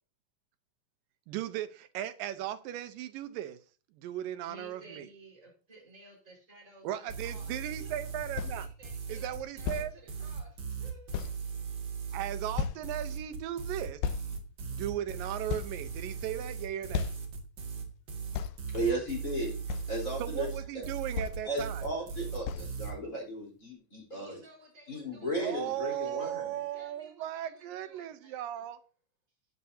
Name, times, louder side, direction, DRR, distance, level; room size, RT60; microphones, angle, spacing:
voice 1, 1.3-3.6 3.9-5.1 6.8-8.7 9.1-9.9 12.1-14.0 14.7-17.1 20.2-21.8 25.4-28.8, right 12 dB, 80° right, 2.5 m, -37 dB
voice 2, 4.4-7.9 8.5-11.3 24.1-26.4 26.7-28.6, right 2 dB, 20° right, 5.1 m, -55 dB
sound 1, 7.1-22.9, right 6 dB, 50° right, 3.0 m, -38 dB
sound 2, 8.4-8.6 9.7-9.9 10.6-10.7 11.1-11.4 12.6-12.9 14.0-14.2 14.9-15.0 15.5-16.3 16.9-17.3 18.3-18.6 19.7-19.9 21.2-21.4 22.4-22.7, left 7 dB, 75° left, 2.2 m, -34 dB
voice 3, 18.7-19.6 19.9-20.5 20.7-20.8 21.4-24.4 24.9-26.6, right 1 dB, 25° left, 4.4 m, -35 dB
13.5 x 9.5 x 2.8 m
omnidirectional pair, 3.9 m